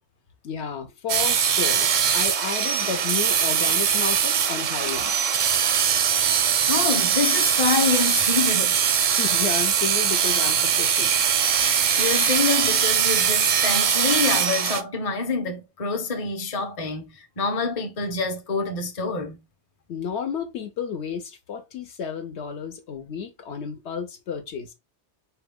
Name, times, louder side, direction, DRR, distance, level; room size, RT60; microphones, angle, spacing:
voice 1, 0.4-5.1 9.1-11.1 19.9-24.7, left 6 dB, 75° left, 1.0 m, -32 dB
sound 1, 1.1-14.8, right 8 dB, 60° right, 0.5 m, -21 dB
voice 2, 6.7-8.8 11.5-19.4, left 4 dB, 35° left, 0.7 m, -26 dB
4.3 x 2.3 x 3.5 m
omnidirectional pair, 1.2 m